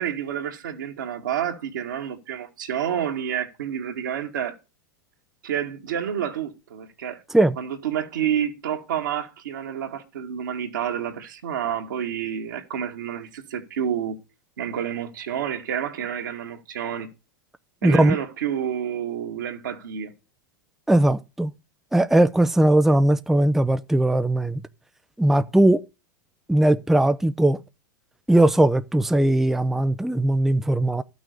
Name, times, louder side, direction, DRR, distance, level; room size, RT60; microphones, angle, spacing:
voice 1, 0.0-4.6 5.4-7.2 7.6-14.2 14.6-17.1 17.8-20.1, right 9 dB, 70° right, 2.0 m, -29 dB
voice 2, 17.8-18.2 20.9-21.5 21.9-24.6 25.2-25.8 26.5-27.6 28.3-31.0, right 1 dB, 5° right, 0.5 m, -19 dB
12.5 x 6.3 x 6.7 m
hypercardioid pair, 100°, 11 cm